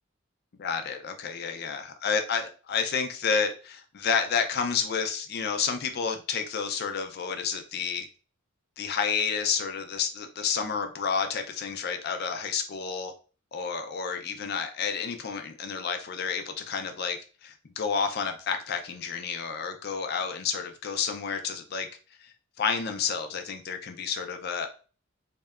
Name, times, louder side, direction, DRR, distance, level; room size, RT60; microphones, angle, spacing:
voice 1, 0.6-8.1 8.8-13.1 13.5-21.9 22.2-24.7, left 6 dB, 50° left, 6 dB, 0.4 m, -30 dB
2.7 x 2.1 x 2.3 m, 0.36 s
head